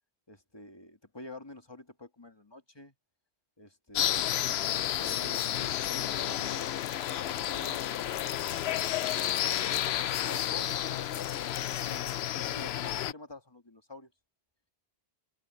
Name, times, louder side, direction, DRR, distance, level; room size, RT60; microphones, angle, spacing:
voice 1, 0.3-2.9 3.6-4.4 4.9-7.8 9.9-11.3 11.9-14.1, left 2 dB, 25° left, 1.9 m, -47 dB
sound 1, 3.9-13.1, left 12 dB, 75° left, 0.8 m, -31 dB
omnidirectional pair, 1.1 m